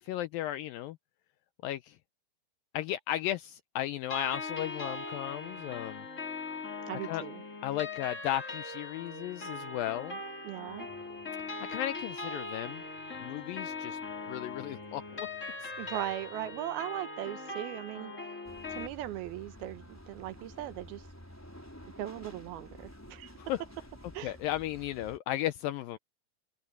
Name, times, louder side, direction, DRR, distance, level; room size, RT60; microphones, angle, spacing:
voice 1, 0.0-1.0 1.6-2.0 2.7-6.1 7.0-7.2 7.6-10.2 11.7-12.8 13.2-14.0 14.3-15.3 15.6-15.7 23.4-23.6 24.2-26.0, left 13 dB, 80° left, 2.1 m, -35 dB
sound 1, 4.1-18.9, left 3 dB, 20° left, 3.3 m, -40 dB
voice 2, 6.9-7.4 10.4-10.9 15.8-18.1 18.7-21.0 22.0-23.3 24.1-24.3, right 13 dB, 75° right, 2.7 m, -38 dB
sound 2, 10.7-16.6, right 3 dB, 45° right, 8.5 m, -61 dB
sound 3, 18.4-25.2, equal, 5° left, 3.5 m, -51 dB
omnidirectional pair, 4.6 m